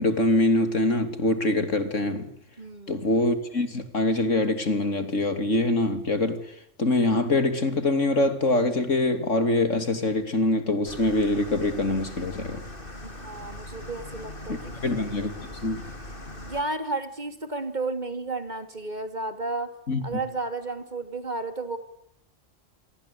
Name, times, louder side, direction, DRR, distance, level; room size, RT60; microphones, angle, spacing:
voice 1, 0.0-2.3 2.9-12.6 14.5-15.8 19.9-20.0, left 2 dB, 75° left, 3.5 m, -24 dB
voice 2, 2.6-3.1 13.0-14.7 16.4-19.7 20.0-21.8, right 3 dB, 35° right, 3.0 m, -32 dB
sound 1, 10.9-16.6, left 1 dB, 45° left, 3.6 m, -40 dB
28.5 x 22.5 x 8.7 m
omnidirectional pair, 1.3 m